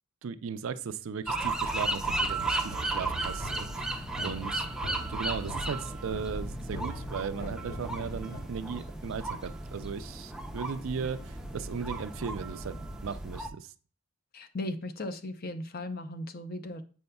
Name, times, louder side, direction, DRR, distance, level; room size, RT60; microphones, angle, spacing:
voice 1, 0.2-4.7 5.1-13.7, right 6 dB, 60° right, 12 dB, 0.4 m, -37 dB
sound 1, 1.3-13.5, right 2 dB, 5° right, 0.4 m, -35 dB
sound 2, 1.6-8.4, left 1 dB, 65° left, 2.1 m, -43 dB
voice 2, 14.3-16.8, left 1 dB, 40° left, 8 dB, 0.6 m, -37 dB
8.6 x 5.3 x 2.2 m, 0.38 s
head